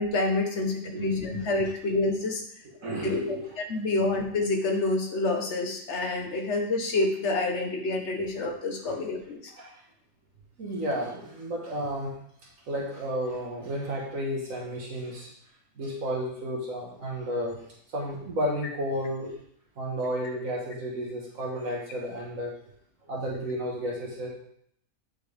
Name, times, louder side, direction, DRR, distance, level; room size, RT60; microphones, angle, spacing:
voice 1, 0.0-2.4 3.0-3.2 3.7-9.4, left 2 dB, 55° left, 2 dB, 1.5 m, -27 dB
voice 2, 0.9-1.4 2.8-3.5 9.6-9.8 10.6-12.1 12.7-15.3 15.8-17.6 17.9-19.3 19.8-22.5 23.0-24.3, equal, 70° right, -3 dB, 1.9 m, -32 dB
8.5 x 6.0 x 3.5 m, 0.68 s
omnidirectional pair, 1.4 m